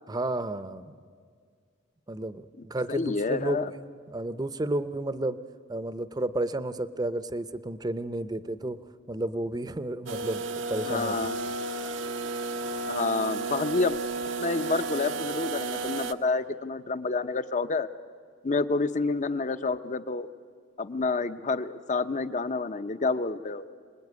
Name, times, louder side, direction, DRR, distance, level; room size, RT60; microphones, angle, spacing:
voice 1, 0.1-0.9 2.1-5.4 5.7-8.8 9.1-10.4 10.7-11.2, right 1 dB, 20° right, 13 dB, 0.6 m, -32 dB
voice 2, 2.9-3.7 10.9-11.4 12.9-14.0 14.4-17.9 18.4-20.3 20.8-23.6, left 3 dB, 40° left, 13 dB, 0.7 m, -28 dB
sound 1, 10.1-16.1, right 3 dB, 85° right, 0.9 m, -33 dB
26.5 x 19.5 x 9.5 m, 2.1 s
head